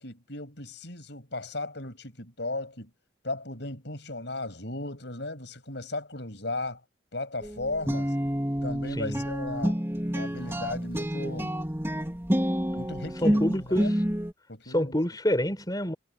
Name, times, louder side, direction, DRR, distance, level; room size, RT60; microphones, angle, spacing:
voice 1, 0.0-2.9 3.2-6.8 7.1-8.1 8.6-9.8 10.1-11.5 12.7-13.9 14.5-14.9, left 2 dB, 60° left, 7.0 m, -36 dB
sound 1, 7.4-14.3, equal, 10° right, 3.1 m, -28 dB
voice 2, 8.9-9.2 13.2-14.0 14.6-15.9, equal, 20° left, 4.5 m, -27 dB
head